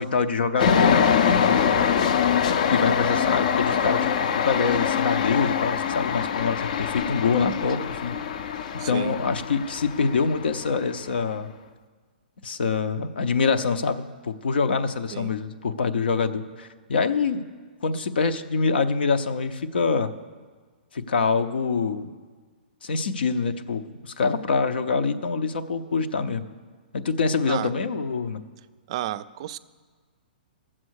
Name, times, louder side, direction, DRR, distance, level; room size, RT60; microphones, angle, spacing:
voice 1, 0.0-1.8 2.7-8.2 8.9-11.5 12.4-17.5 17.8-20.1 20.9-22.1 22.8-26.5 26.9-28.4, left 5 dB, 85° left, 9 dB, 0.7 m, -25 dB
sound 1, 0.6-10.9, left 7 dB, 50° left, 0.5 m, -24 dB
voice 2, 8.8-9.1 15.1-15.3 27.5-27.7 28.9-29.6, right 13 dB, 35° right, 14 dB, 0.3 m, -32 dB
13.5 x 7.5 x 6.4 m, 1.5 s
hypercardioid pair, 165°, 5 cm